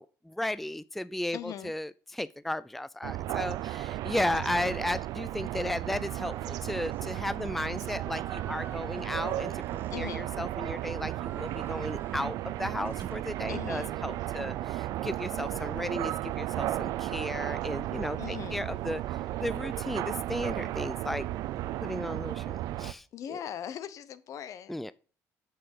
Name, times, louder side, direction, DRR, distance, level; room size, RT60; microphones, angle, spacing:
voice 1, 0.0-21.3 21.8-23.4 24.7-24.9, left 1 dB, 5° left, 0.4 m, -35 dB
voice 2, 1.3-1.7 9.9-10.3 13.5-13.9 18.2-18.6 23.1-24.8, left 10 dB, 60° left, 0.9 m, -40 dB
sound 1, 3.0-22.9, right 14 dB, 75° right, 0.5 m, -34 dB
sound 2, 5.9-6.5 6.8-7.2 7.8-10.6 11.0-12.4 12.9-13.9 15.0-16.8, right 6 dB, 35° right, 1.7 m, -50 dB
8.7 x 6.8 x 6.7 m
cardioid pair, 105°, 6 cm